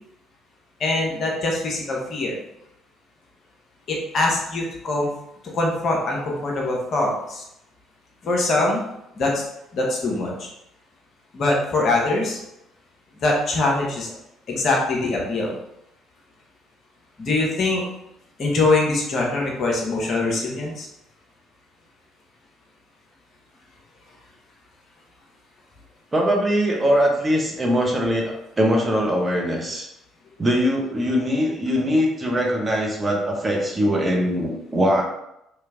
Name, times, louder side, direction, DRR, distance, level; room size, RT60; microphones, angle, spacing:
voice 1, 0.8-2.4 3.9-5.1 5.5-7.4 8.2-8.8 9.2-9.4 9.7-10.5 11.3-12.4 13.2-14.1 14.5-15.6 17.2-17.8 18.4-20.9, left 2 dB, 45° left, -2 dB, 1.0 m, -23 dB
voice 2, 26.1-29.9 30.4-35.0, equal, 25° right, 0 dB, 0.9 m, -21 dB
3.2 x 2.9 x 3.6 m, 0.82 s
figure-of-eight pair, 50°, 0 cm